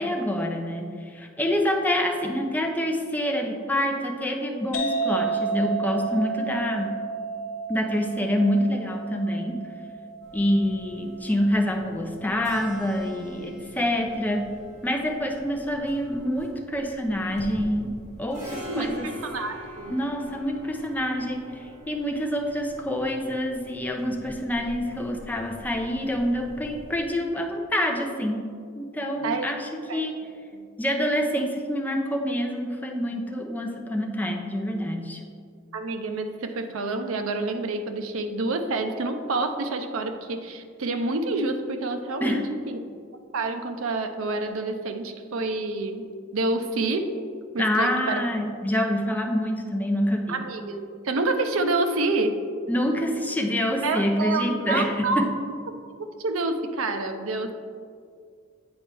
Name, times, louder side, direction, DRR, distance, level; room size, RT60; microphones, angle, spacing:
voice 1, 0.0-7.0 7.7-9.6 10.3-14.5 14.8-17.9 18.2-19.1 19.9-28.4 28.7-30.1 30.8-35.2 42.2-42.4 47.6-50.4 52.7-55.3, equal, 10° left, 2 dB, 0.5 m, -26 dB
sound 1, 4.7-12.2, right 4 dB, 70° left, 0.9 m, -31 dB
sound 2, 10.2-27.0, right 1 dB, 35° right, 1.5 m, -45 dB
voice 2, 18.7-20.0 29.2-29.5 29.9-30.1 30.5-30.7 35.7-42.8 43.3-46.1 46.3-47.1 47.5-48.2 50.3-52.4 53.8-55.3 56.0-57.5, right 2 dB, 70° right, 6 dB, 0.5 m, -28 dB
8.8 x 4.2 x 3.4 m, 2.2 s
head